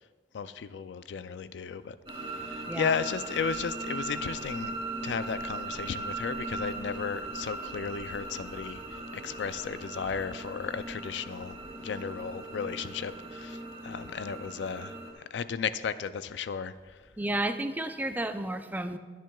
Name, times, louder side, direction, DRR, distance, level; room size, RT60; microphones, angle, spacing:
voice 1, 0.3-4.7 5.0-11.6 11.8-17.0, left 6 dB, 80° left, 13 dB, 0.4 m, -35 dB
sound 1, 1.7-12.5 12.8-13.3 13.6-13.9 14.3-14.5 15.6-15.7 16.0-16.1 16.3-17.3, equal, 20° left, 1.7 m, -55 dB
sound 2, 2.1-15.1, right 2 dB, 30° right, 2.5 m, -39 dB
voice 2, 17.2-19.0, right 1 dB, 10° right, 8 dB, 0.5 m, -32 dB
22.0 x 7.5 x 2.3 m, 1.5 s
head